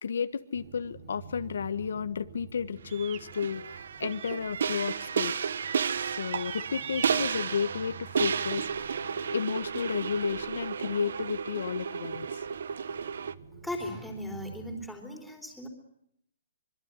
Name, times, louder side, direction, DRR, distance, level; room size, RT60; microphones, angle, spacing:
voice 1, 0.0-5.3 6.1-8.7 9.3-12.4, left 6 dB, 75° left, 11 dB, 1.3 m, -32 dB
sound 1, 0.5-14.8, right 6 dB, 45° right, 5.6 m, -50 dB
sound 2, 2.9-3.3 4.1-4.5 4.7-5.1 5.6-5.8 6.3-7.1, right 14 dB, 25° right, 1.2 m, -45 dB
sound 3, 3.1-13.3, right 6 dB, 70° right, 1.0 m, -32 dB
voice 2, 13.6-15.7, left 1 dB, ahead, 1 dB, 3.8 m, -37 dB
24.5 x 22.5 x 9.8 m, 0.75 s
hypercardioid pair, 165°, 0 cm